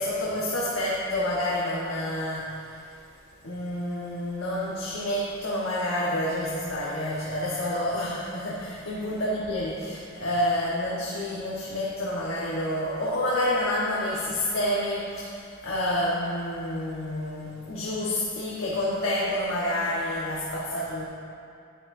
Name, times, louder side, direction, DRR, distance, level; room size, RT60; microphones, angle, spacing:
voice 1, 0.0-2.8 3.4-21.0, left 1 dB, 90° left, -6 dB, 1.2 m, -28 dB
10.5 x 9.0 x 2.6 m, 2.4 s
head